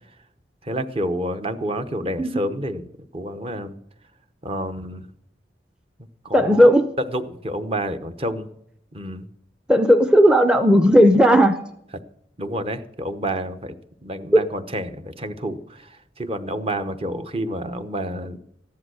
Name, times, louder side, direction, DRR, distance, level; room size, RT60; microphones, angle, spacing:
voice 1, 0.6-2.9 3.1-3.7 4.4-5.1 6.2-6.7 7.1-8.5 8.9-9.3 12.4-13.7 14.0-18.4, right 1 dB, 30° right, 9 dB, 0.9 m, -29 dB
voice 2, 6.3-6.8 9.7-11.6 14.3-14.4, equal, 5° right, 7 dB, 0.6 m, -14 dB
14.0 x 10.5 x 6.3 m, 0.72 s
head